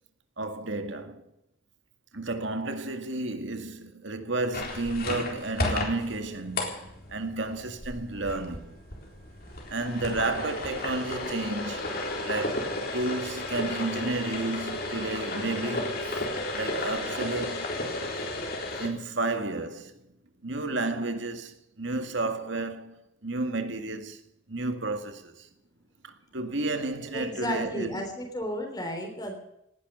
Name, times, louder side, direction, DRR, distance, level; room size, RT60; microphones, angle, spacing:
voice 1, 0.4-1.3 2.1-8.8 9.7-11.8 12.2-16.2 16.5-17.8 18.8-20.1 20.4-24.2 24.5-25.5 26.0-28.0, right 2 dB, 65° right, 2.0 m, -32 dB
sound 1, 4.5-18.9, left 2 dB, 45° left, 3.8 m, -33 dB
voice 2, 27.1-29.4, left 1 dB, 20° left, 3.5 m, -33 dB
19.0 x 11.0 x 6.8 m
head